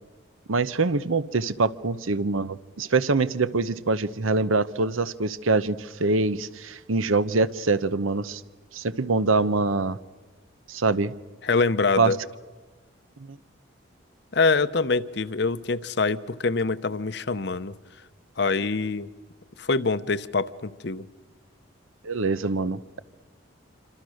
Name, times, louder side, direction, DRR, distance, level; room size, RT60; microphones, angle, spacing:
voice 1, 0.5-8.4 8.7-10.0 10.7-11.1 12.0-12.1 13.3-13.4 22.0-23.0, right 3 dB, 85° right, 15 dB, 0.9 m, -24 dB
voice 2, 11.4-12.2 14.3-17.7 18.4-19.1 19.6-21.1, left 4 dB, 55° left, 15 dB, 0.8 m, -25 dB
27.0 x 25.5 x 6.4 m, 1.3 s
head